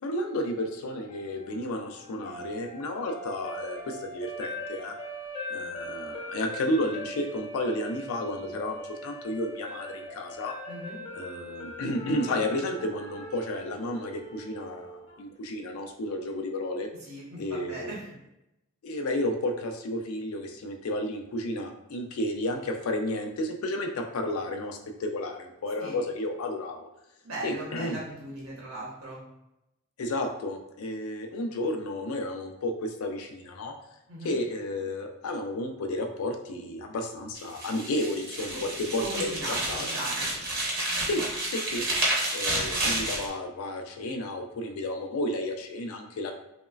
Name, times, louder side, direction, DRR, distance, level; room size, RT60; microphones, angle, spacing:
voice 1, 0.0-4.9 5.5-10.5 11.1-16.9 17.4-17.9 18.8-26.9 27.4-28.0 30.0-33.7 34.2-39.9 41.0-41.2 41.5-41.9 42.3-46.3, left 1 dB, 90° left, 4 dB, 0.4 m, -32 dB
sound 1, 1.1-15.2, equal, 30° left, 0.4 m, -41 dB
voice 2, 10.7-11.0 17.0-18.0 25.8-26.0 27.2-29.2 34.1-34.4 38.5-38.6 38.9-40.3, right 1 dB, 85° right, -5 dB, 0.7 m, -38 dB
sound 2, 37.4-43.3, right 1 dB, 50° right, 0.8 m, -30 dB
3.0 x 2.1 x 2.3 m, 0.87 s
head